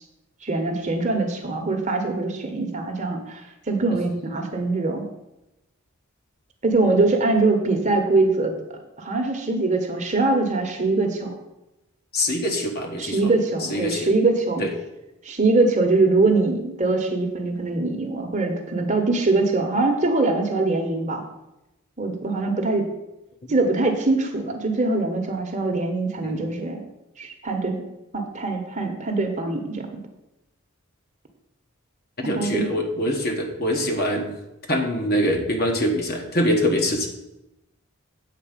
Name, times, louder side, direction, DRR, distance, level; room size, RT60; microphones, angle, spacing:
voice 1, 0.4-5.0 6.6-8.5 9.0-11.3 13.0-14.6 15.2-21.2 22.0-22.9 23.5-26.8 27.2-27.8 28.1-30.0 32.2-32.7, right 3 dB, 35° right, 4 dB, 1.2 m, -23 dB
voice 2, 12.1-13.3 13.7-14.1 14.6-14.7 26.2-26.4 32.2-34.3 34.7-37.1, equal, 45° left, 2 dB, 1.4 m, -24 dB
8.3 x 4.7 x 7.4 m, 0.93 s
head